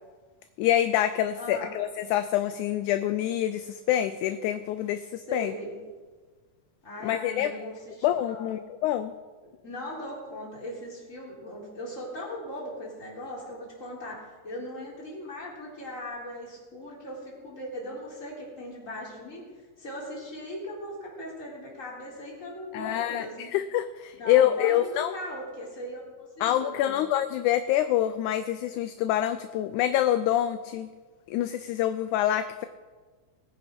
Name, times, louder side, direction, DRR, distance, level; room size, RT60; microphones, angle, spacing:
voice 1, 0.6-5.5 7.0-7.5 8.0-9.1 22.7-25.1 26.4-30.9 31.3-32.7, left 12 dB, 80° left, 11 dB, 1.9 m, -26 dB
voice 2, 1.4-1.7 5.3-5.8 6.8-8.6 9.4-19.4 19.8-23.5 24.2-27.0, equal, 25° left, -4 dB, 3.8 m, -39 dB
20.0 x 9.1 x 5.2 m, 1.4 s
omnidirectional pair, 3.8 m